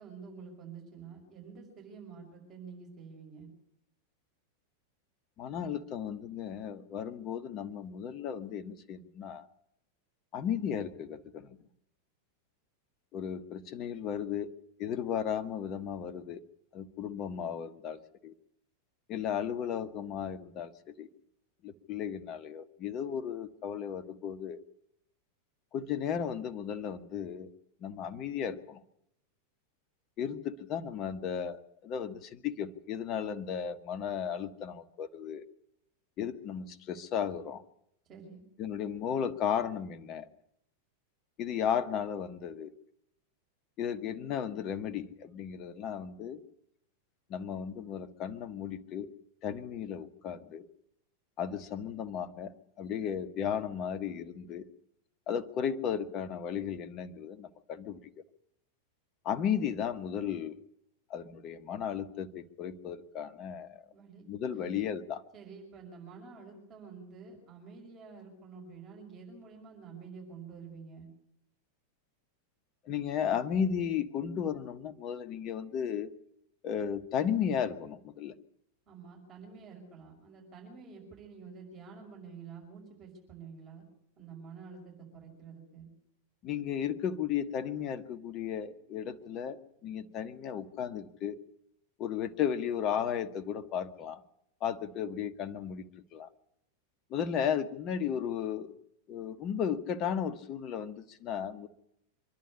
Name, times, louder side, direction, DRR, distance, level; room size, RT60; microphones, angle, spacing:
voice 1, 0.0-3.5 38.1-38.4 63.9-64.2 64.5-64.7 65.3-71.1 78.9-83.8 84.2-85.9, right 5 dB, 30° right, 1 dB, 6.0 m, -49 dB
voice 2, 5.4-9.5 10.3-11.6 13.1-14.5 14.8-16.4 16.7-18.3 19.1-21.1 21.6-24.6 25.7-27.5 27.8-28.8 30.2-35.4 36.2-37.6 38.6-40.3 41.4-42.7 43.8-46.4 47.3-49.1 49.4-50.7 51.4-54.6 55.3-58.0 59.2-60.6 61.1-63.8 64.3-65.2 72.8-76.1 76.6-78.3 86.4-89.6 89.8-91.4 92.0-94.2 94.6-96.3 97.1-98.8 99.1-101.7, left 8 dB, 35° left, 12 dB, 1.2 m, -35 dB
25.0 x 11.5 x 9.9 m, 0.77 s
figure-of-eight pair, 90°, 0 cm